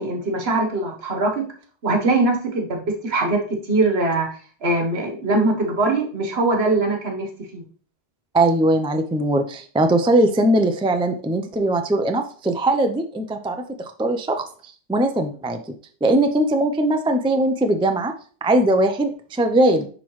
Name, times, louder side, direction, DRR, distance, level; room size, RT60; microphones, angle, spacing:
voice 1, 0.0-1.5 1.8-4.3 4.6-7.6, right 2 dB, 70° right, 2 dB, 1.5 m, -22 dB
voice 2, 8.3-14.4 14.9-15.6 16.0-18.1 18.4-19.9, right 1 dB, 10° right, 6 dB, 0.3 m, -20 dB
10.0 x 3.8 x 3.1 m, 0.43 s
omnidirectional pair, 1.1 m